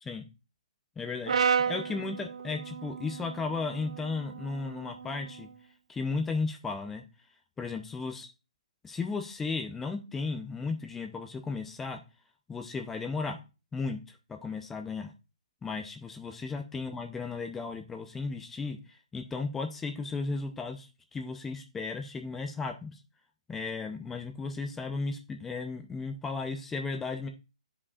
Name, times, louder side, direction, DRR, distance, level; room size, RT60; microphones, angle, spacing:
voice 1, 1.0-5.5 5.9-7.0 7.6-8.3 8.8-12.0 12.5-13.4 13.7-14.0 14.3-15.1 15.6-23.0 23.5-27.3, left 4 dB, 5° left, 5 dB, 0.5 m, -35 dB
Brass instrument, 1.3-5.5, right 6 dB, 60° right, 0.4 m, -33 dB
11.0 x 5.0 x 2.4 m, 0.29 s
hypercardioid pair, 175°, 4 cm